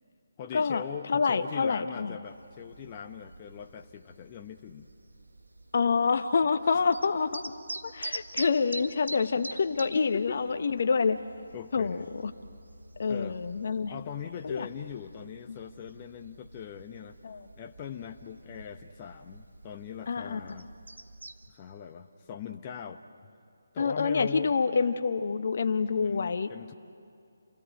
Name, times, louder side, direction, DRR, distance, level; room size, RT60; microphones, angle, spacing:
voice 1, 0.4-4.9 9.9-10.4 11.5-12.1 13.1-13.4 13.9-17.2 17.6-20.7 21.5-23.0 23.7-24.5 26.0-26.7, left 8 dB, 25° left, 5 dB, 1.0 m, -41 dB
voice 2, 1.1-2.2 5.7-7.5 7.8-11.2 11.7-12.3 13.0-13.9 14.4-14.7 15.5-15.6 17.2-17.5 20.1-20.4 23.8-26.5, left 5 dB, 50° left, 10 dB, 1.1 m, -27 dB
sound 1, 2.2-21.5, right 2 dB, 80° right, 1.7 m, -46 dB
29.0 x 18.0 x 9.6 m, 2.4 s
figure-of-eight pair, 150°, 0 cm